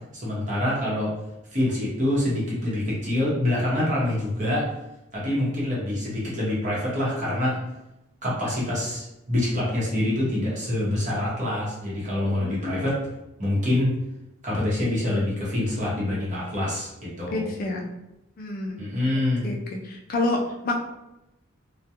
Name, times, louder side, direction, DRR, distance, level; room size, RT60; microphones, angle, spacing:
voice 1, 0.1-1.1 1.5-4.7 5.1-7.6 8.2-13.0 13.4-13.9 14.4-17.5 18.8-19.5, left 1 dB, 35° right, -6 dB, 0.9 m, -26 dB
voice 2, 12.4-12.9 17.3-17.9 18.4-19.6 19.8-20.8, left 2 dB, 45° left, 1 dB, 0.3 m, -29 dB
2.3 x 2.1 x 2.8 m, 0.91 s
head